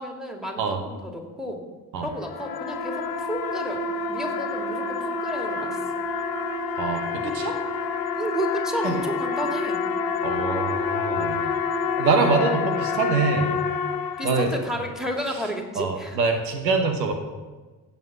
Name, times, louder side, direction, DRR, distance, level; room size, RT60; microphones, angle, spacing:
voice 1, 0.0-1.6 2.0-3.8 4.1-5.8 8.1-9.8 14.2-16.2, equal, ahead, 2 dB, 2.7 m, -31 dB
sound 1, 2.0-14.8, left 5 dB, 45° left, 1.1 m, -28 dB
voice 2, 6.8-7.6 8.8-9.0 10.2-11.4 12.0-13.5 14.2-14.6 15.7-17.1, right 4 dB, 85° right, 6 dB, 1.1 m, -24 dB
16.0 x 5.8 x 6.0 m, 1.3 s
figure-of-eight pair, 45°, 50 cm